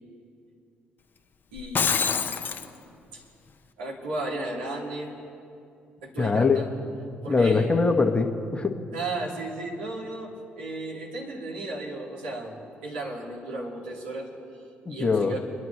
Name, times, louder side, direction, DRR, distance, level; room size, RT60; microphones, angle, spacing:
voice 1, 1.5-2.4 3.1-3.2 3.8-5.2 6.0-6.7 7.2-7.7 8.9-14.3 14.9-15.4, right 2 dB, 80° right, -5 dB, 2.7 m, -34 dB
Shatter, 1.6-2.7, left 6 dB, 40° left, 1.1 m, -25 dB
voice 2, 6.2-6.6 7.3-8.8 14.8-15.4, left 4 dB, 20° left, 4 dB, 1.4 m, -22 dB
27.5 x 11.0 x 3.3 m, 2.5 s
figure-of-eight pair, 45°, 5 cm